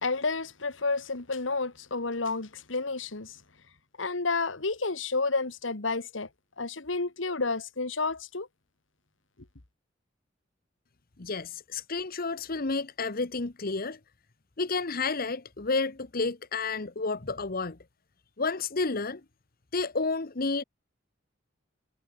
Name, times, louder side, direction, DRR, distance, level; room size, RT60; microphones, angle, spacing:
voice 1, 0.0-3.4 4.0-6.3 6.6-8.5, left 3 dB, 85° left, 1.9 m, -30 dB
voice 2, 11.2-14.0 14.6-17.8 18.4-19.2 19.7-20.6, left 3 dB, 50° left, 1.1 m, -30 dB
head